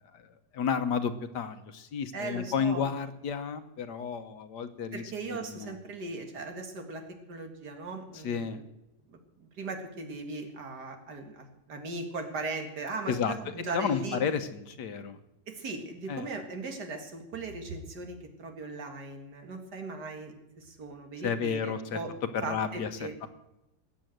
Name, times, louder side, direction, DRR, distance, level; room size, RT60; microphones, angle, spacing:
voice 1, 0.5-5.0 5.5-5.8 8.2-8.6 13.1-13.3 13.7-15.2 16.1-16.3 21.2-22.0 22.3-22.9 23.2-23.3, left 6 dB, 85° left, 10 dB, 1.7 m, -31 dB
voice 2, 2.1-2.8 4.9-8.6 9.1-14.2 15.5-22.1 22.4-23.1, right 3 dB, 75° right, 5 dB, 2.5 m, -38 dB
19.0 x 7.7 x 7.8 m, 0.89 s
omnidirectional pair, 1.8 m